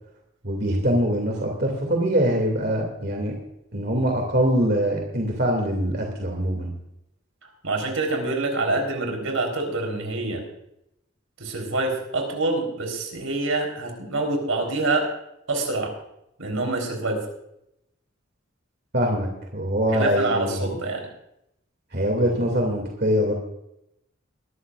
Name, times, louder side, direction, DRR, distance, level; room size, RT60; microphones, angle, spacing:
voice 1, 0.4-3.3 3.7-6.7 18.9-20.7 21.9-23.3, equal, 50° right, 1 dB, 2.6 m, -23 dB
voice 2, 7.6-10.4 11.4-15.1 15.5-15.9 16.4-17.2 19.9-21.0, right 2 dB, 85° right, 2 dB, 4.1 m, -26 dB
23.0 x 13.5 x 2.5 m, 0.80 s
head